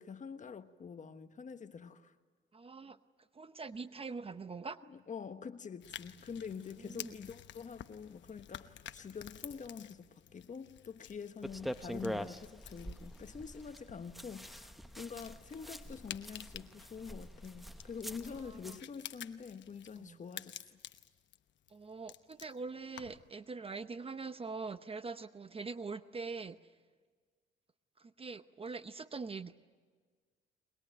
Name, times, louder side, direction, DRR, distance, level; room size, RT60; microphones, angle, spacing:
voice 1, 0.0-2.1 4.9-20.8, left 6 dB, 40° left, 1.3 m, -46 dB
voice 2, 2.5-3.0 3.3-4.8 6.5-7.1 18.5-18.8 20.0-20.2 21.7-26.6 28.0-29.6, right 4 dB, 30° right, 0.8 m, -43 dB
sound 1, 5.8-23.3, left 11 dB, 65° left, 1.0 m, -52 dB
sound 2, 11.4-18.8, equal, ahead, 0.9 m, -45 dB
22.0 x 21.5 x 9.2 m
cardioid pair, 90°, 20 cm